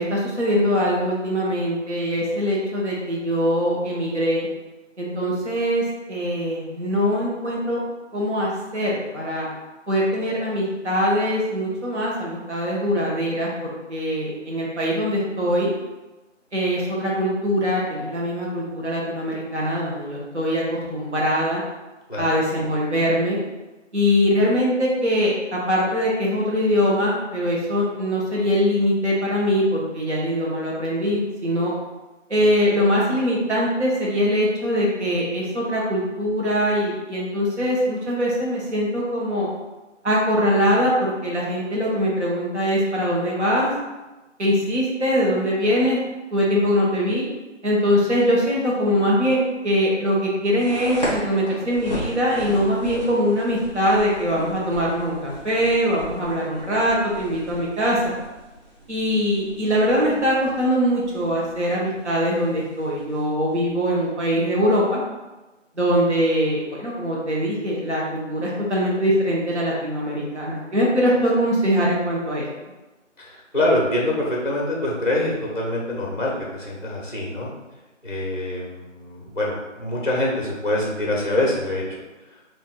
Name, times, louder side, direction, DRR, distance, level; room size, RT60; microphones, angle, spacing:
voice 1, 0.0-4.5 5.0-5.8 6.1-7.8 8.1-9.5 9.9-15.7 16.5-21.6 22.2-23.4 23.9-31.7 32.3-39.5 40.0-43.7 44.4-46.0 46.3-47.3 47.6-58.0 58.9-65.0 65.8-72.5, equal, 65° right, -4 dB, 1.0 m, -22 dB
sound 1, 50.6-64.1, equal, 35° right, 0.8 m, -37 dB
voice 2, 73.2-77.5 78.0-82.0, left 1 dB, 40° left, -3 dB, 0.5 m, -25 dB
2.5 x 2.4 x 3.7 m, 1.1 s
figure-of-eight pair, 175°, 37 cm